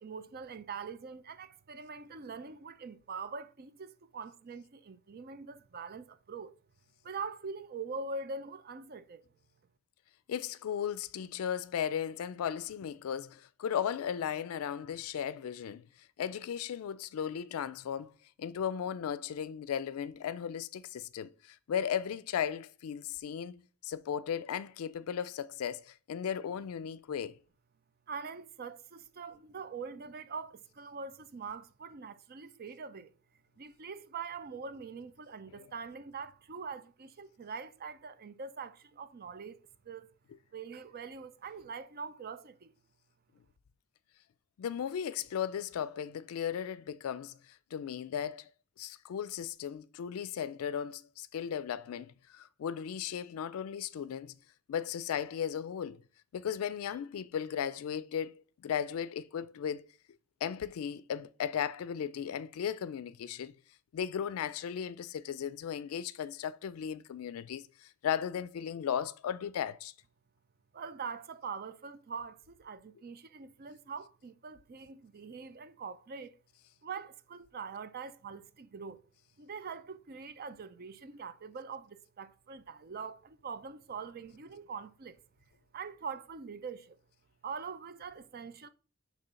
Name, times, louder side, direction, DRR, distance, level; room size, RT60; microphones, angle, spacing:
voice 1, 0.0-6.6 7.0-9.2 28.1-33.1 33.6-39.6 39.8-40.1 40.5-42.7 70.7-76.3 76.8-79.0 79.4-85.2 85.7-87.0 87.4-88.7, right 5 dB, 45° right, 0.5 m, -43 dB
voice 2, 10.3-18.1 18.4-27.4 35.5-35.7 44.6-48.5 48.8-54.3 54.7-56.0 56.3-58.3 58.6-59.9 60.4-63.5 63.9-69.9, left 8 dB, 80° left, 0.3 m, -36 dB
6.7 x 3.1 x 5.6 m
head